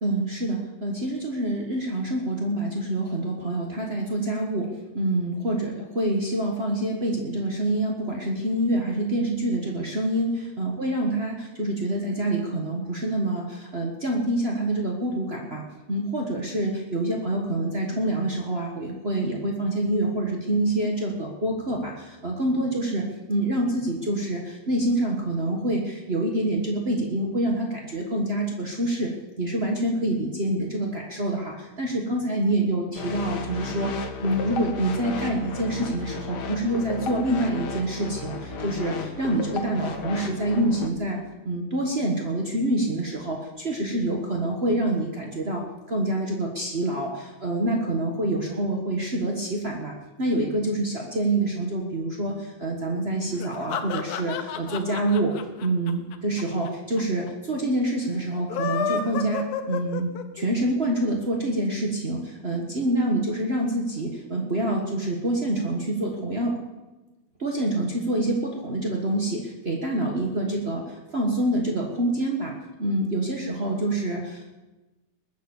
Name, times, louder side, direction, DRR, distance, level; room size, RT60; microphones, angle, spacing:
voice 1, 0.0-29.1 29.4-33.9 34.2-41.2 41.4-66.5 67.4-74.4, right 1 dB, 75° right, 0 dB, 0.5 m, -26 dB
sound 1, 32.9-40.9, left 4 dB, 65° left, 1.0 m, -34 dB
sound 2, 53.3-56.7 57.0-57.1 57.3-57.4 58.3-60.5, left 7 dB, 85° left, 2.8 m, -30 dB
21.0 x 9.3 x 7.2 m, 1.1 s
omnidirectional pair, 4.0 m